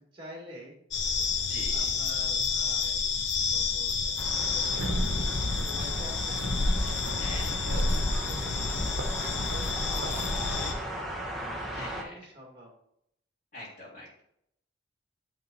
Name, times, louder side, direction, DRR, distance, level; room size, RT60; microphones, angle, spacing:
voice 1, 0.1-0.8 1.7-3.1 3.4-5.0 5.6-6.4 7.1-11.0 11.9-12.7, equal, 25° right, -1 dB, 2.1 m, -47 dB
sound 1, 0.9-10.7, left 4 dB, 70° left, 0.8 m, -29 dB
voice 2, 1.4-1.9 7.2-7.7 11.7-12.3 13.5-14.2, left 1 dB, 40° left, -8 dB, 2.1 m, -44 dB
sound 2, 4.2-12.0, right 1 dB, ahead, 1.0 m, -38 dB
sound 3, 4.6-10.6, right 2 dB, 90° right, 0.9 m, -43 dB
8.6 x 3.7 x 3.9 m, 0.75 s
head